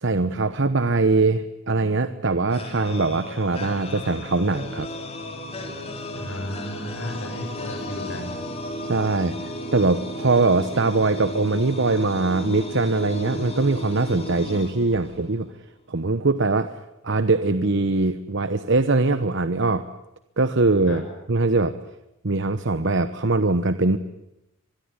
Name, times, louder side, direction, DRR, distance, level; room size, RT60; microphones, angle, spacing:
voice 1, 0.0-4.9 8.8-15.5 15.9-16.7 17.0-19.8 20.4-21.0 21.3-21.7 22.2-24.0, right 3 dB, 60° right, 11 dB, 1.0 m, -22 dB
sound 1, 2.5-15.4, left 1 dB, 30° left, 4.0 m, -34 dB
voice 2, 6.1-8.4 20.9-21.0, left 1 dB, 65° left, 1 dB, 7.4 m, -34 dB
25.0 x 21.0 x 9.7 m, 0.90 s
head